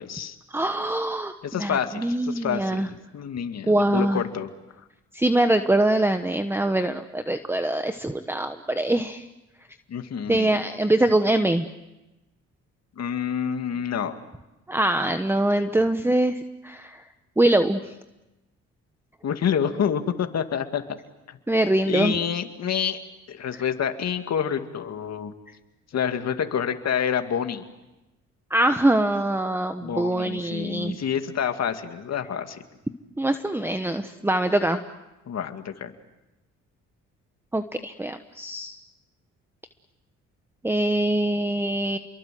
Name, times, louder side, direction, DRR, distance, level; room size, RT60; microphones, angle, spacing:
voice 1, 0.0-0.4 1.4-4.5 9.9-10.7 13.0-14.2 19.2-20.8 21.3-21.4 21.9-23.0 23.3-25.3 25.9-27.6 29.8-32.6 35.3-35.9, left 8 dB, 60° left, 7 dB, 2.3 m, -28 dB
voice 2, 0.5-1.3 1.6-2.9 3.7-4.2 5.1-9.2 10.3-11.7 14.7-16.3 16.6-17.0 17.4-17.8 21.5-22.2 23.5-23.6 28.5-31.0 33.2-34.8 37.5-38.7 40.6-42.0, right 1 dB, 10° right, 8 dB, 1.1 m, -23 dB
30.0 x 23.0 x 7.7 m, 0.99 s
cardioid pair, 90°, 30 cm